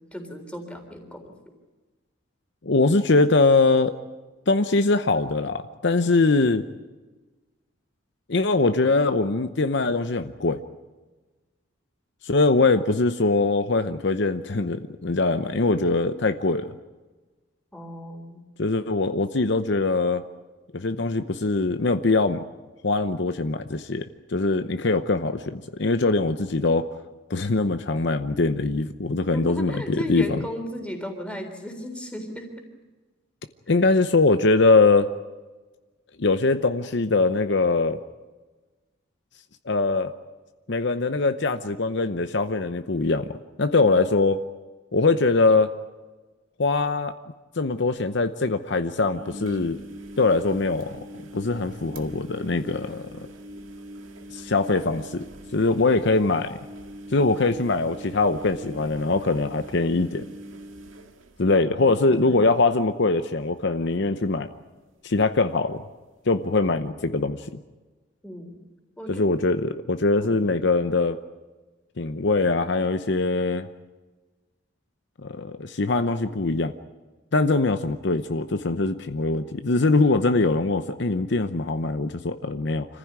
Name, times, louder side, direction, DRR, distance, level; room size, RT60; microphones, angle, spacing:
voice 1, 0.0-1.3 17.7-18.4 29.3-32.6 61.6-62.4 68.2-68.6 69.0-69.2 70.2-70.4, left 1 dB, 5° left, 4 dB, 3.6 m, -36 dB
voice 2, 2.6-4.0 4.5-6.6 8.3-10.6 12.2-16.7 18.6-20.2 20.7-22.4 22.8-24.0 24.3-26.9 27.3-30.2 33.7-35.1 36.2-38.0 39.7-40.1 40.7-43.3 43.6-44.4 44.9-45.7 46.6-47.1 47.6-49.8 50.2-51.0 51.3-53.3 54.3-55.2 55.5-56.6 57.1-60.2 61.4-64.5 65.0-65.8 66.3-67.6 69.1-71.2 72.0-73.7 75.2-76.7 77.3-82.9, left 3 dB, 60° left, 9 dB, 0.8 m, -22 dB
sound 1, 47.7-47.8 48.0-48.1 49.0-62.1 62.4-62.9 63.1-63.2 65.1-65.2, right 1 dB, 85° right, 2.0 m, -42 dB
26.0 x 15.0 x 9.6 m, 1.3 s
head